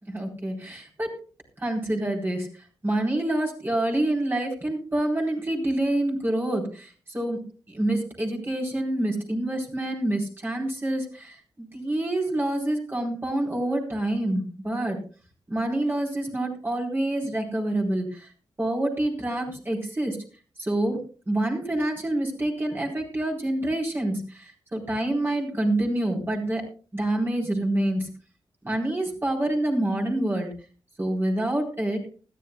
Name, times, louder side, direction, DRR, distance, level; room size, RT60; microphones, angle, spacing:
voice 1, 0.0-1.1 1.6-2.5 2.8-7.4 7.7-15.0 15.5-18.3 18.6-20.2 20.6-26.6 26.9-28.1 28.6-30.5 31.0-32.0, right 1 dB, 25° right, -1 dB, 4.0 m, -27 dB
20.5 x 13.0 x 2.3 m, 0.37 s
wide cardioid pair, 95°, 8 cm